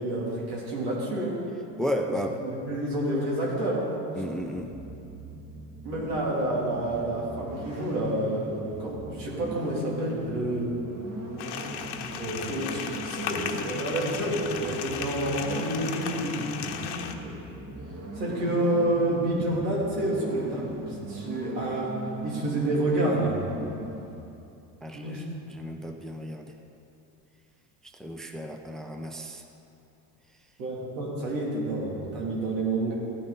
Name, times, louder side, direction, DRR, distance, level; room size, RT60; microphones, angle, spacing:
voice 1, 0.0-1.4 2.1-3.9 5.8-10.8 12.2-17.3 18.2-20.7 21.1-23.4 24.9-25.2 30.6-32.9, right 1 dB, 85° right, -4 dB, 3.1 m, -29 dB
voice 2, 1.8-2.4 4.1-4.7 24.8-26.5 28.0-29.4, equal, ahead, 4 dB, 0.6 m, -33 dB
sound 1, 4.3-24.2, right 1 dB, 30° right, 2.2 m, -39 dB
sound 2, 11.4-17.1, left 7 dB, 50° left, 1.0 m, -35 dB
15.0 x 9.3 x 4.0 m, 2.8 s
supercardioid pair, 95°, 49 cm